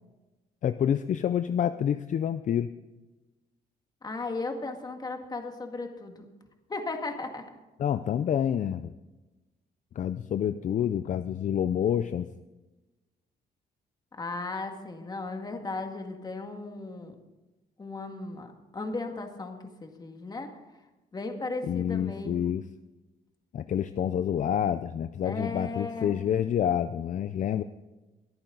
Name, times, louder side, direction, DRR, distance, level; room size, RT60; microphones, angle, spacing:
voice 1, 0.6-2.7 7.8-8.9 10.0-12.3 21.6-22.6 23.5-27.6, left 9 dB, 50° left, 11 dB, 0.5 m, -28 dB
voice 2, 4.0-6.3 6.7-7.4 14.1-17.2 17.8-20.5 21.1-22.5 25.2-26.1, left 3 dB, 25° left, 4 dB, 2.0 m, -36 dB
23.5 x 8.8 x 3.9 m, 1.1 s
cardioid pair, 120°, 16 cm